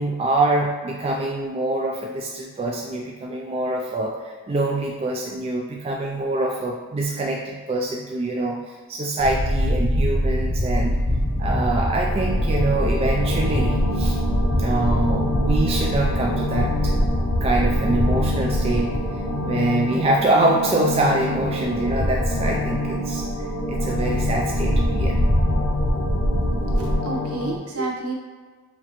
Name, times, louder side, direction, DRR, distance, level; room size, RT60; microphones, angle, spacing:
voice 1, 0.0-11.0 11.4-14.2 14.6-16.9 17.4-18.9 19.4-23.3 23.7-25.2, right 2 dB, 25° right, -1 dB, 0.3 m, -24 dB
sound 1, 9.2-19.8 20.1-20.2 21.3-26.9, equal, 25° left, 0.7 m, -23 dB
sound 2, 11.2-27.5, left 1 dB, 85° left, 0.7 m, -29 dB
voice 2, 26.5-28.1, right 2 dB, 75° right, -2 dB, 0.9 m, -30 dB
5.7 x 2.8 x 3.0 m, 1.5 s
head